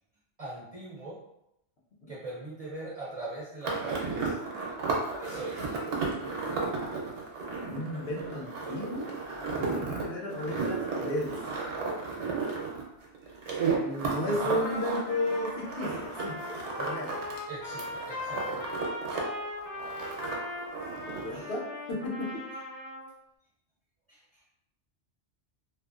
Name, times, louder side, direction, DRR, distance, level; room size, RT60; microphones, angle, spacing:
voice 1, 0.4-1.2 2.1-4.4 5.2-5.6 13.2-13.3 14.3-14.6 15.9-16.0 17.0-17.2 17.5-18.7 20.0-20.2 21.3-21.5 24.1-24.5, right 2 dB, 45° right, -6 dB, 0.5 m, -41 dB
sound 1, 3.6-17.4 17.7-19.2 19.5-21.4, right 4 dB, 80° right, 1.0 m, -34 dB
voice 2, 7.7-9.1 9.6-11.4 13.8-17.2 21.0-22.4, left 1 dB, 65° left, -2 dB, 0.9 m, -34 dB
Trumpet, 14.6-23.1, left 2 dB, 10° left, 0.7 m, -39 dB
2.7 x 2.5 x 2.4 m, 0.81 s
omnidirectional pair, 1.2 m